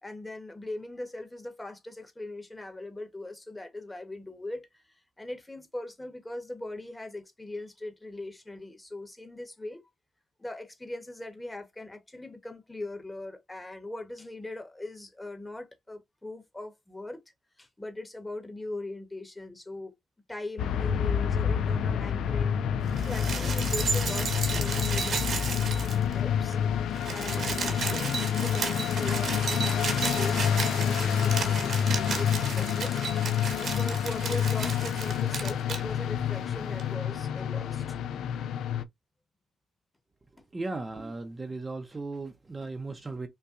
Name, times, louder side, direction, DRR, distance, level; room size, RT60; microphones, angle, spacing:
voice 1, 0.0-9.8 10.4-17.2 17.6-20.0 20.3-26.6 27.1-30.4 30.7-38.0 40.4-40.5, left 2 dB, 15° left, 1.1 m, -40 dB
sound 1, 20.6-38.8, left 8 dB, 75° left, 0.4 m, -28 dB
sound 2, 22.9-26.2 26.5-26.6 26.8-35.8 36.8-36.9, right 5 dB, 55° right, 1.1 m, -34 dB
voice 2, 40.5-43.3, right 3 dB, 25° right, 0.7 m, -36 dB
5.4 x 2.2 x 2.5 m
cardioid pair, 90°, 0 cm